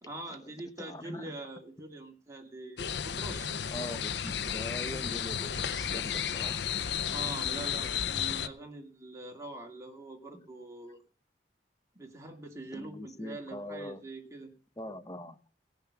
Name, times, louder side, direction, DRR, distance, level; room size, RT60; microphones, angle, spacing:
voice 1, 0.0-3.5 7.1-11.0 11.9-14.5, right 2 dB, 15° right, 1 dB, 2.2 m, -44 dB
voice 2, 0.8-1.3 3.7-6.6 10.3-10.4 12.7-14.0 14.8-15.4, left 1 dB, 20° left, 11 dB, 0.8 m, -42 dB
sound 1, 2.8-8.5, left 8 dB, 65° left, 0.6 m, -33 dB
18.0 x 7.1 x 5.8 m, 0.41 s
head